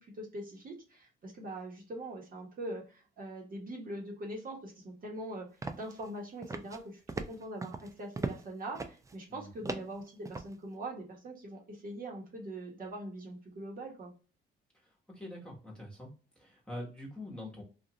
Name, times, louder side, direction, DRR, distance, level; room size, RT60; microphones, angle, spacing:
voice 1, 0.0-7.0 7.3-14.1, right 1 dB, 45° right, -1 dB, 1.1 m, -42 dB
Footsteps Womans Dress Flats Shoes Ceramic Stone Tile, 5.6-6.1 6.4-6.8 7.1-8.5 8.7-9.1 9.7-10.5, right 3 dB, 15° right, 0.4 m, -38 dB
voice 2, 9.3-9.7 14.8-16.1 16.4-17.6, left 1 dB, 5° left, -3 dB, 1.2 m, -45 dB
2.5 x 2.4 x 2.9 m, 0.35 s
cardioid pair, 90°, 20 cm